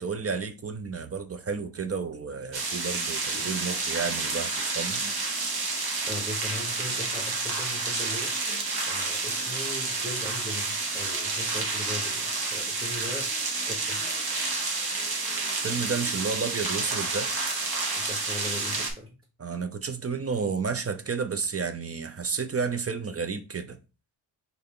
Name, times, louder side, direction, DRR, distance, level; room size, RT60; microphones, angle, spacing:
voice 1, 0.0-5.0 15.6-17.3 18.8-18.9 19.4-23.8, right 5 dB, 30° right, 0.5 m, -31 dB
sound 1, 2.5-18.9, right 3 dB, 50° right, 1.1 m, -30 dB
voice 2, 6.0-8.3 8.9-13.3 13.7-14.0 17.9-19.1, left 1 dB, 10° right, 1.1 m, -39 dB
4.0 x 3.3 x 3.6 m
wide cardioid pair, 115°, 47 cm